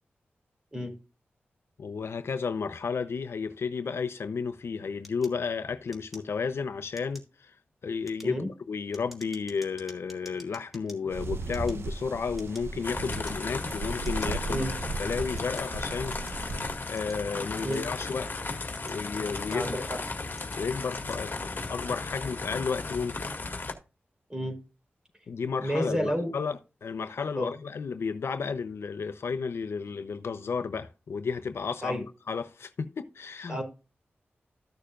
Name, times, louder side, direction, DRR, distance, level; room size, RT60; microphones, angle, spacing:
voice 1, 1.8-7.6 7.8-14.6 15.0-18.6 18.8-19.9 20.6-23.2 25.3-33.6, left 5 dB, 80° left, 0.7 m, -33 dB
sound 1, 5.0-6.6 6.9-7.4 7.9-11.0 11.4-12.8 13.1-13.6 14.0-14.3 15.0-16.4 17.0-18.1 18.6-19.8 20.3-20.6 20.9-21.2, left 1 dB, ahead, 2.4 m, -51 dB
sound 2, 11.1-16.8, right 3 dB, 75° right, 0.9 m, -36 dB
sound 3, 12.8-23.7, left 3 dB, 50° left, 2.0 m, -35 dB
voice 2, 19.5-20.0 24.3-24.6 25.6-26.3 27.3-27.5 31.8-32.0 33.5-33.6, equal, 20° right, 4.1 m, -30 dB
14.0 x 6.6 x 2.5 m
wide cardioid pair, 75°, 4 cm